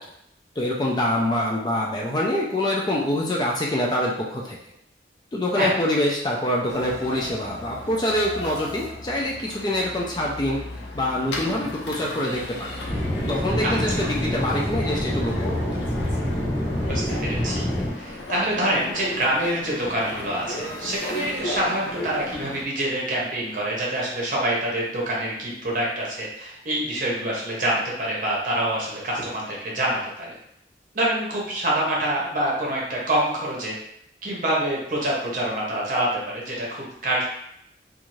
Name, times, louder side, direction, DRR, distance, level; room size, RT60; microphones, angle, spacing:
voice 1, 0.6-4.6 5.3-10.6 10.9-12.8 13.3-15.7, left 1 dB, 25° left, -2 dB, 0.3 m, -25 dB
sound 1, 6.7-22.6, left 1 dB, 85° left, 0.5 m, -35 dB
Aircraft / Engine, 12.9-17.9, equal, 10° right, 0.8 m, -26 dB
voice 2, 13.6-14.1 16.9-17.7 17.9-30.4 30.9-33.7 34.2-37.2, right 1 dB, 50° right, -4 dB, 0.8 m, -26 dB
2.6 x 2.4 x 3.0 m, 0.75 s
head